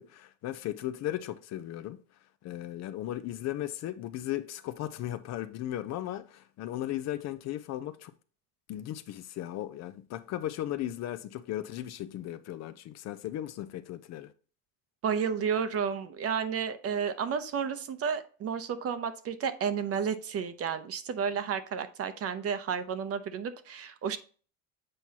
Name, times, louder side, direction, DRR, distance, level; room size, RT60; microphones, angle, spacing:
voice 1, 0.0-2.0 2.4-8.1 8.7-14.3, left 13 dB, 45° left, 0.5 m, -36 dB
voice 2, 15.0-24.2, right 7 dB, 40° right, 0.7 m, -32 dB
7.6 x 4.5 x 2.8 m
supercardioid pair, 105°, 38 cm